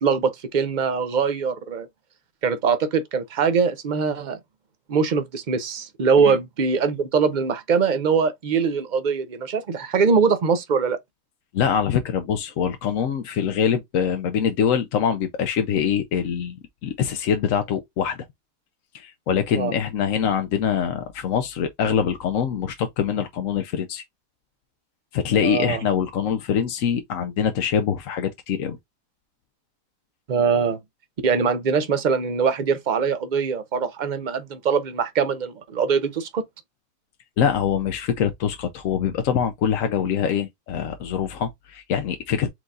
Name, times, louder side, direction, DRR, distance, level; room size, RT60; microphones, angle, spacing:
voice 1, 0.0-1.9 2.4-4.4 4.9-11.0 19.6-19.7 25.3-25.8 30.3-30.8 31.2-36.4, right 5 dB, 50° right, 0.5 m, -22 dB
voice 2, 11.5-16.6 16.8-18.3 18.9-24.0 25.1-28.8 37.4-42.5, left 8 dB, 65° left, 0.9 m, -24 dB
4.6 x 3.9 x 2.4 m
omnidirectional pair, 1.7 m